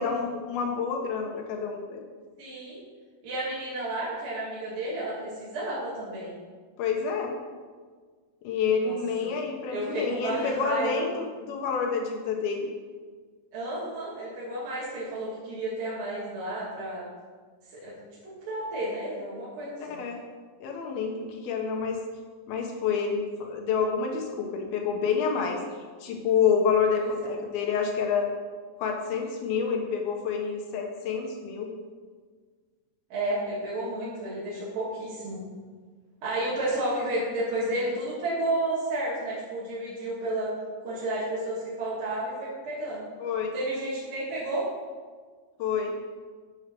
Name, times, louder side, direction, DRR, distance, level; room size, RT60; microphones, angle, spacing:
voice 1, 0.0-2.0 6.8-7.3 8.4-12.7 19.8-20.2 20.6-22.0 22.5-25.6 26.0-28.3 28.8-31.7 43.2-43.5 45.6-45.9, left 6 dB, 70° left, 2 dB, 2.9 m, -28 dB
voice 2, 2.4-2.8 3.2-6.4 8.8-9.4 9.7-11.0 13.5-17.1 17.8-18.0 18.2-20.0 27.0-27.3 33.1-35.4 36.2-40.5 40.8-43.0 43.5-44.7, right 1 dB, 55° right, -9 dB, 4.0 m, -32 dB
10.0 x 7.5 x 6.0 m, 1.5 s
omnidirectional pair, 4.8 m